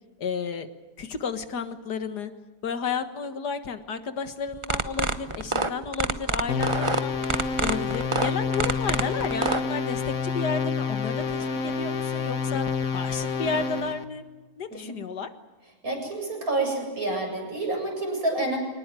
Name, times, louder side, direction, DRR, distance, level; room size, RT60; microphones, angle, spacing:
voice 1, 0.2-0.7 1.0-2.3 2.6-7.2 7.6-12.7 12.9-14.2 14.6-15.3, left 5 dB, 80° left, 9 dB, 2.1 m, -32 dB
sound 1, 4.5-9.6, right 3 dB, 20° right, 0.9 m, -26 dB
sound 2, 6.5-14.0, left 5 dB, 60° left, 1.8 m, -28 dB
voice 2, 15.8-18.6, right 2 dB, 60° right, 1 dB, 8.3 m, -28 dB
24.0 x 19.5 x 9.2 m, 1.3 s
omnidirectional pair, 1.7 m